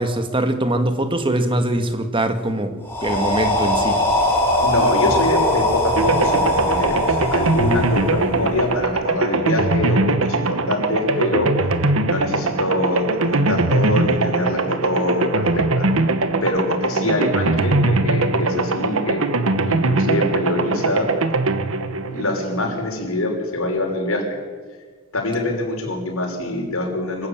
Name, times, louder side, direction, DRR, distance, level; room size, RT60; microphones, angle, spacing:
voice 1, 0.0-4.0, right 1 dB, 25° right, 8 dB, 1.8 m, -22 dB
sound 1, 2.8-8.8, left 1 dB, 10° left, 5.5 m, -21 dB
voice 2, 4.6-11.5 12.0-15.9 16.4-19.2 19.6-21.1 22.1-24.2 25.1-27.3, left 1 dB, 90° left, 1 dB, 5.8 m, -24 dB
sound 2, 6.0-22.9, right 3 dB, 80° right, 1.3 m, -21 dB
24.5 x 14.5 x 8.9 m, 1.5 s
head